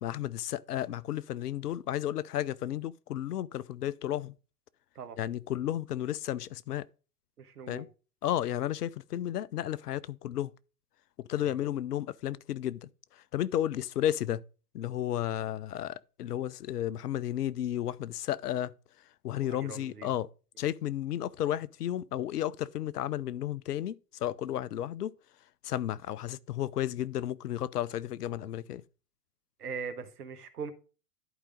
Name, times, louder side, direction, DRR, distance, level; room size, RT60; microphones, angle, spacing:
voice 1, 0.0-4.3 5.2-6.8 7.7-7.9 8.2-10.5 11.2-14.4 14.7-18.7 19.2-20.3 20.6-25.1 25.6-28.8, left 12 dB, 75° left, 0.6 m, -33 dB
voice 2, 7.4-7.9 11.4-11.5 19.4-20.1 29.6-30.7, right 6 dB, 75° right, 1.3 m, -41 dB
11.0 x 4.9 x 3.8 m
figure-of-eight pair, 95°, 47 cm